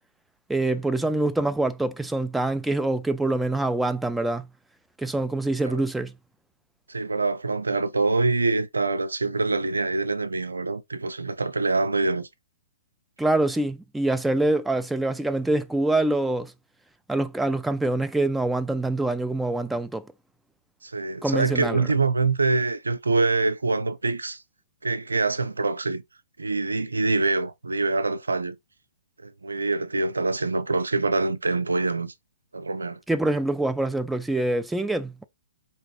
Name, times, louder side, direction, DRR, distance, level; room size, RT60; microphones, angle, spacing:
voice 1, 0.5-4.5 5.0-6.1 13.2-16.5 17.1-20.1 21.2-21.9 33.1-35.2, right 2 dB, 5° right, 0.4 m, -25 dB
voice 2, 6.9-12.3 20.8-24.4 24.8-26.0 26.4-28.6 29.2-32.1 32.5-33.0, right 3 dB, 85° right, 0.5 m, -25 dB
4.3 x 2.9 x 2.9 m
hypercardioid pair, 130°, 0 cm